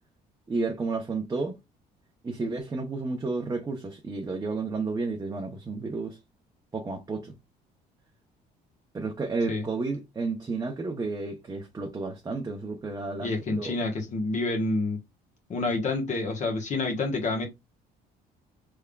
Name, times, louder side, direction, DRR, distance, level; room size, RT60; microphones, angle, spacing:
voice 1, 0.5-1.6 2.2-6.2 6.7-7.4 8.9-13.7, right 3 dB, 20° right, 0.7 m, -31 dB
voice 2, 13.2-15.0 15.5-17.5, left 3 dB, 45° left, 1.1 m, -28 dB
3.5 x 3.4 x 2.3 m
cardioid pair, 110°, 17 cm